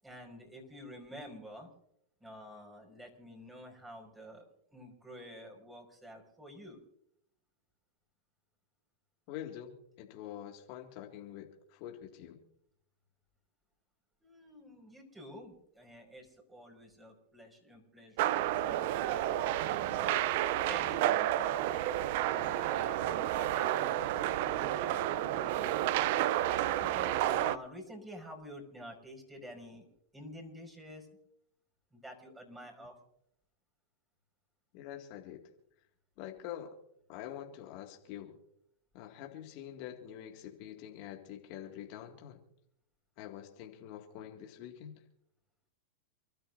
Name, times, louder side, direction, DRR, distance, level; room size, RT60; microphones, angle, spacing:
voice 1, 0.0-1.7 2.2-4.4 4.7-6.8 14.2-20.2 20.6-21.7 26.6-29.9 30.1-31.1 31.9-33.0, equal, 10° right, 1 dB, 5.5 m, -49 dB
voice 2, 9.3-12.4 34.7-35.4 36.2-36.7 37.1-38.4 38.9-42.4 43.2-45.0, left 11 dB, 55° left, 2 dB, 2.2 m, -46 dB
sound 1, 18.2-27.6, right 13 dB, 60° right, 0.6 m, -31 dB
29.0 x 13.0 x 2.7 m, 0.74 s
hypercardioid pair, 115°, 0 cm